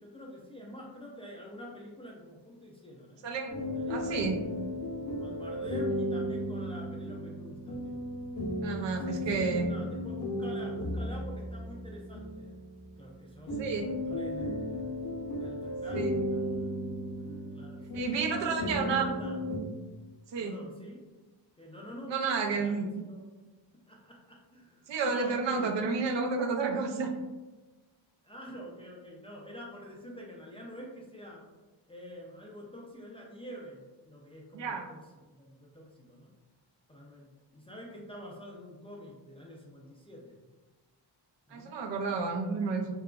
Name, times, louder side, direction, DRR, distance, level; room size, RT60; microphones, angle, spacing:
voice 1, 0.0-3.2 3.7-4.4 5.2-8.1 9.0-12.6 13.0-14.9 15.4-16.7 17.2-18.0 18.3-19.4 20.4-21.0 21.6-22.1 22.5-23.2 23.7-25.9 28.2-31.4 31.9-35.0 35.3-36.3 36.9-40.4 41.5-41.7, equal, 15° left, -3 dB, 0.3 m, -46 dB
sound 1, 3.5-19.6, equal, 50° left, 0.6 m, -35 dB
voice 2, 3.9-4.4 8.6-9.7 13.6-13.8 15.9-16.1 17.9-19.0 20.3-20.5 22.1-22.9 24.9-27.1 34.5-34.9 41.5-42.9, right 4 dB, 75° right, 4 dB, 0.5 m, -31 dB
2.9 x 2.3 x 2.3 m, 1.2 s
wide cardioid pair, 105°, 45 cm